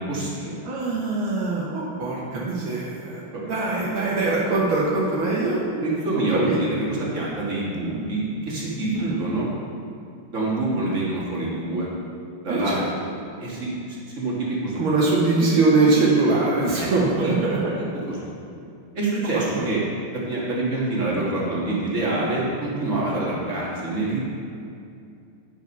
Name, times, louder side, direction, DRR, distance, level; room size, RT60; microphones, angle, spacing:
voice 1, 0.0-0.6 3.3-3.5 5.8-9.5 10.3-11.9 12.4-12.8 13.4-14.8 16.8-16.9 17.2-17.3 17.8-18.3 18.9-19.8 20.1-24.2, right 2 dB, 35° right, -5 dB, 2.1 m, -26 dB
voice 2, 0.6-3.2 3.5-5.6 6.3-6.6 8.9-9.2 12.5-12.9 14.8-17.7 19.2-19.7, right 3 dB, 80° right, -5 dB, 2.1 m, -22 dB
10.5 x 5.2 x 5.4 m, 2.4 s
omnidirectional pair, 2.3 m